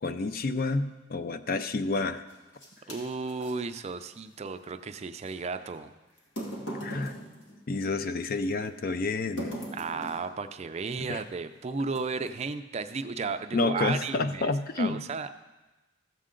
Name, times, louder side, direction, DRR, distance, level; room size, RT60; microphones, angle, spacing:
voice 1, 0.0-2.2 6.8-7.2 7.7-9.6 11.1-11.2 13.5-15.0, left 3 dB, 45° left, 10 dB, 0.5 m, -29 dB
sound 1, 2.3-3.6 5.3-5.4 6.2-8.3 9.4-10.3 11.2-11.4 11.9-12.4, equal, 85° left, 2.0 m, -39 dB
voice 2, 2.9-5.9 9.7-14.5 14.8-15.3, right 4 dB, 35° right, 9 dB, 0.4 m, -34 dB
14.0 x 7.5 x 3.8 m, 1.1 s
head